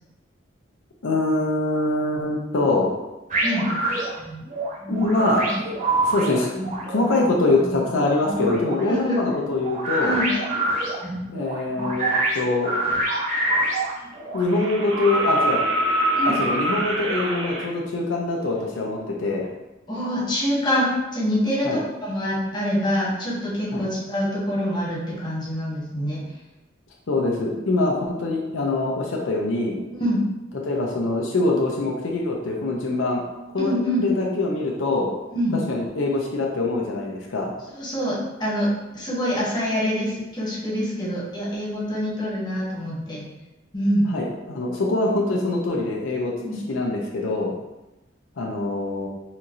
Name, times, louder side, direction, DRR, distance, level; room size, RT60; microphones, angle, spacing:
voice 1, 1.0-2.9 4.9-5.4 6.0-6.5 6.9-10.2 11.3-12.8 14.3-15.6 16.4-19.5 21.6-21.8 23.7-23.8 27.1-29.8 30.6-33.2 33.5-35.1 35.7-37.5 44.1-46.3 46.7-47.5 48.4-49.1, left 2 dB, 85° left, -1 dB, 0.6 m, -24 dB
sound 1, 3.3-14.4, right 2 dB, 45° right, 0.9 m, -26 dB
voice 2, 8.8-9.2 10.0-10.3 16.2-16.4 19.9-26.2 30.0-30.2 33.6-34.0 35.3-35.6 37.7-38.7 38.9-43.3 43.7-44.1 46.3-46.6, equal, 25° left, -7 dB, 1.1 m, -25 dB
sound 2, 13.3-13.4 14.4-17.7 19.4-19.5, right 1 dB, 75° right, 0.7 m, -24 dB
4.4 x 2.7 x 2.5 m, 0.99 s
head